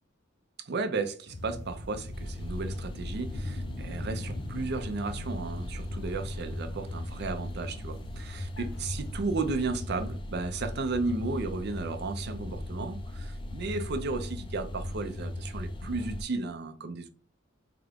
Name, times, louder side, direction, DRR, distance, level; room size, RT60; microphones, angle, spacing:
voice 1, 0.6-17.1, right 3 dB, 55° right, 0.5 m, -34 dB
sound 1, 1.3-10.2, left 1 dB, 90° left, 0.7 m, -42 dB
sound 2, 2.1-16.2, left 1 dB, 25° left, 0.4 m, -38 dB
3.7 x 2.4 x 3.5 m
head